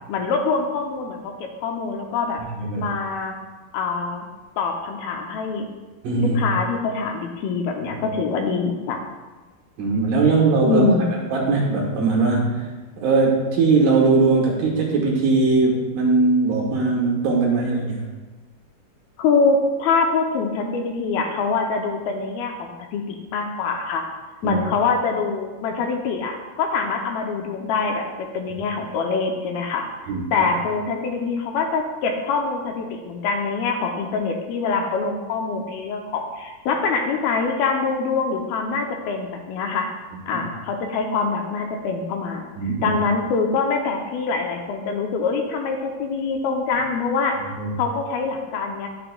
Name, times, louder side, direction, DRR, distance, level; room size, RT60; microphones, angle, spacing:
voice 1, 0.1-1.3 1.6-2.4 2.8-3.4 3.7-4.3 4.6-5.7 6.2-9.0 10.6-11.2 19.2-24.1 24.4-29.9 30.3-39.9 40.3-42.4 42.8-47.4 47.8-48.9, left 4 dB, 80° left, 3 dB, 2.4 m, -24 dB
voice 2, 2.4-2.9 6.0-6.4 9.8-10.9 11.3-12.7 13.0-18.0 24.4-24.6 30.1-30.5 40.3-40.4 42.6-43.0 47.6-47.7, right 3 dB, 65° right, -2 dB, 2.7 m, -20 dB
11.0 x 6.9 x 2.2 m, 1.2 s
omnidirectional pair, 4.5 m